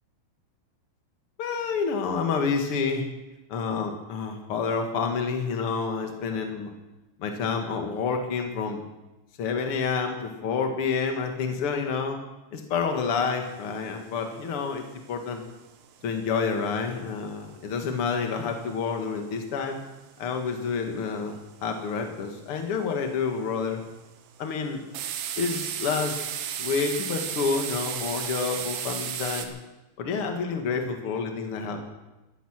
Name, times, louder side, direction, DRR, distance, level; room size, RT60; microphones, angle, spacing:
voice 1, 1.4-3.0 3.5-6.7 7.2-8.8 9.4-12.2 12.5-15.4 16.0-19.8 20.2-23.8 24.4-24.8 25.4-29.5 30.0-31.8, left 5 dB, 50° left, 4 dB, 1.7 m, -29 dB
sound 1, 13.6-13.8 14.1-14.2 14.4-14.8 15.1-15.9 16.3-17.4 17.8-19.2 19.6-19.8 20.1-20.2 20.5-20.9 21.3-21.7 22.3-22.6 23.1-23.7 24.1-24.3 24.9-29.5, right 9 dB, 75° right, 3.1 m, -33 dB
15.0 x 13.5 x 6.6 m, 1.0 s
omnidirectional pair, 5.2 m